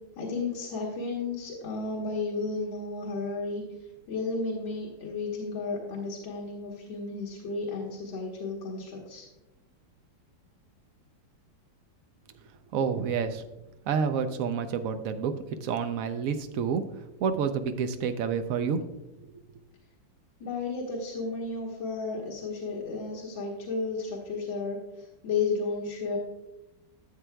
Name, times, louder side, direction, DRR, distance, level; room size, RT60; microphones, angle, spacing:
voice 1, 0.2-3.6 4.1-9.3 20.4-26.2, left 4 dB, 80° left, -4 dB, 2.0 m, -33 dB
voice 2, 12.7-13.4 13.9-16.8 17.2-18.8, right 6 dB, 75° right, 8 dB, 0.7 m, -29 dB
13.0 x 7.6 x 2.2 m, 0.97 s
omnidirectional pair, 2.1 m